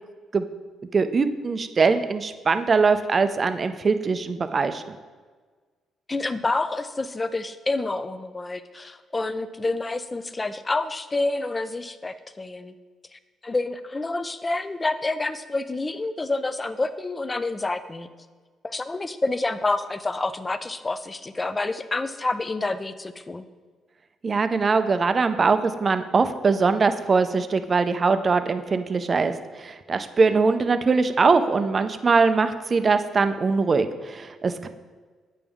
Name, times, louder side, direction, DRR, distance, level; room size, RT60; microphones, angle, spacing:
voice 1, 0.9-5.0 24.2-34.7, right 4 dB, 35° right, 10 dB, 0.4 m, -22 dB
voice 2, 6.1-12.7 13.1-18.1 18.6-23.5, left 2 dB, 25° left, 12 dB, 0.4 m, -28 dB
8.5 x 5.3 x 3.5 m, 1.4 s
cardioid pair, 90°, 0 cm